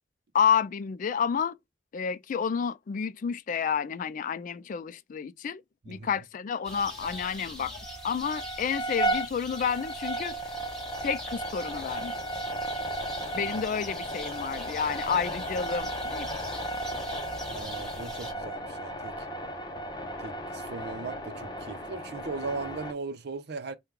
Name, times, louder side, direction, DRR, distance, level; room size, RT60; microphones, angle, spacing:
voice 1, 0.3-1.5 1.9-7.8 8.0-10.3 11.0-12.2 13.3-16.3, left 7 dB, 45° left, 0.3 m, -30 dB
sound 1, 6.6-18.3, left 1 dB, 5° left, 0.9 m, -43 dB
sound 2, 6.7-7.4 7.7-22.9, right 1 dB, 25° left, 0.7 m, -35 dB
voice 2, 17.5-19.3 20.2-23.8, right 3 dB, 60° right, 0.6 m, -38 dB
4.5 x 2.2 x 3.6 m
head